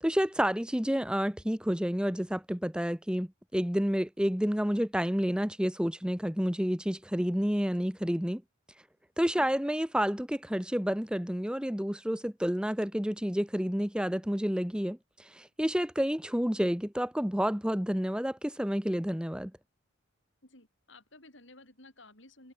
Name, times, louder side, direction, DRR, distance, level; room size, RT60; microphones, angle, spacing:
voice 1, 0.0-8.4 9.2-19.5, equal, 5° right, 1.0 m, -30 dB
voice 2, 20.4-22.5, left 2 dB, 60° left, 7.1 m, -55 dB
head